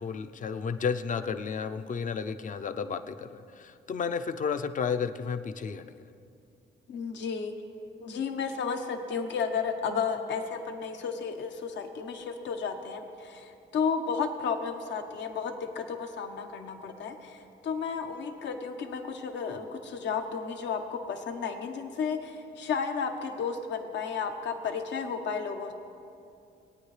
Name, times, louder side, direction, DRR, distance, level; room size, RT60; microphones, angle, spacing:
voice 1, 0.0-5.9, left 6 dB, 45° left, 9 dB, 0.6 m, -32 dB
voice 2, 6.9-7.5 8.0-25.7, left 6 dB, 75° left, 5 dB, 1.1 m, -33 dB
20.5 x 9.1 x 3.3 m, 2.5 s
cardioid pair, 100°, 19 cm